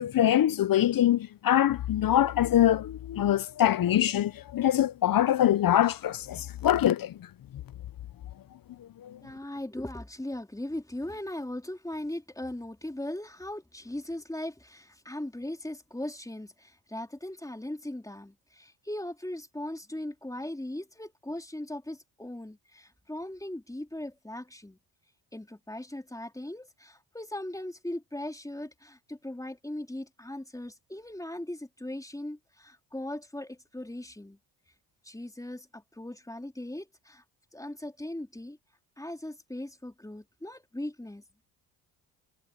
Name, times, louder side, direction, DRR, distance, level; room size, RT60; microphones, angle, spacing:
voice 1, 0.0-7.1 9.0-9.2, left 12 dB, 50° left, 0.9 m, -24 dB
voice 2, 9.2-24.8 25.3-34.4 35.0-37.2 37.5-38.6 39.0-41.4, left 1 dB, 5° left, 3.8 m, -39 dB
supercardioid pair, 70°, 45 cm